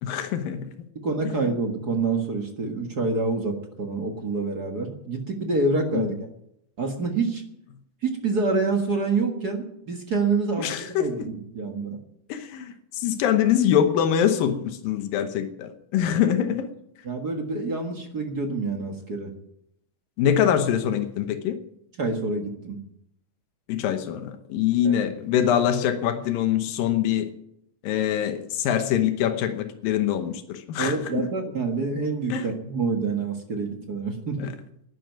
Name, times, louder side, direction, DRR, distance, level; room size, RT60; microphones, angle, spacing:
voice 1, 0.0-0.7 5.9-6.1 10.6-11.1 12.3-16.7 20.2-21.6 23.7-27.3 27.8-31.3 32.3-32.5 34.4-34.5, left 9 dB, 90° left, 8 dB, 2.8 m, -24 dB
voice 2, 0.9-6.3 6.8-7.4 8.0-12.0 16.0-16.1 17.0-19.3 22.0-22.8 24.8-25.0 30.8-34.5, right 3 dB, 40° right, 3 dB, 1.5 m, -27 dB
11.5 x 11.0 x 9.2 m, 0.76 s
omnidirectional pair, 3.9 m